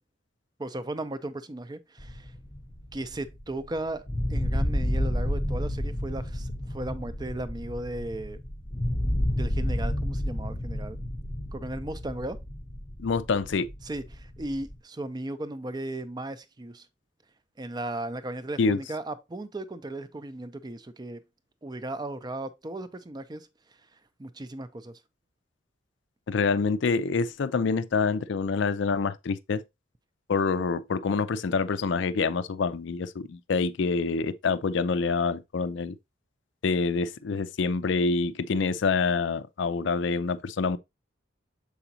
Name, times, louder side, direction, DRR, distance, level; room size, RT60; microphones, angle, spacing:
voice 1, 0.6-2.3 2.9-8.4 9.3-11.0 11.5-12.4 13.8-16.9 17.6-21.2 21.6-23.5 23.9-25.0, right 1 dB, 20° right, 0.4 m, -36 dB
sound 1, 2.0-3.8 4.1-14.8, left 1 dB, 20° left, 0.7 m, -31 dB
voice 2, 13.0-13.7 18.6-18.8 26.3-29.6 30.3-36.0 36.6-40.8, left 4 dB, 65° left, 0.4 m, -26 dB
6.9 x 4.9 x 2.7 m
head